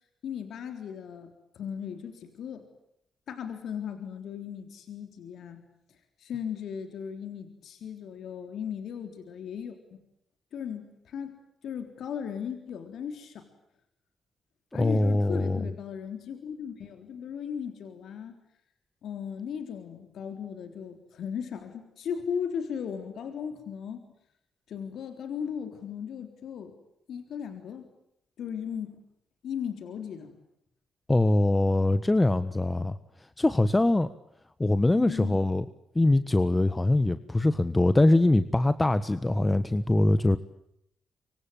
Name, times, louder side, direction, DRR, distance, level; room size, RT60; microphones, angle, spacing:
voice 1, 0.2-2.7 3.3-5.7 6.2-10.0 10.5-11.4 11.6-13.5 14.7-18.3 19.0-24.0 24.7-26.8 27.1-27.9 28.4-29.0 29.4-30.4 35.0-35.4, left 7 dB, 70° left, 6 dB, 3.7 m, -37 dB
voice 2, 14.8-15.6 31.1-33.0 33.4-34.1 34.6-35.6 35.9-40.4, left 2 dB, 20° left, 13 dB, 1.4 m, -23 dB
26.0 x 25.0 x 9.1 m, 0.77 s
hypercardioid pair, 50°, 0 cm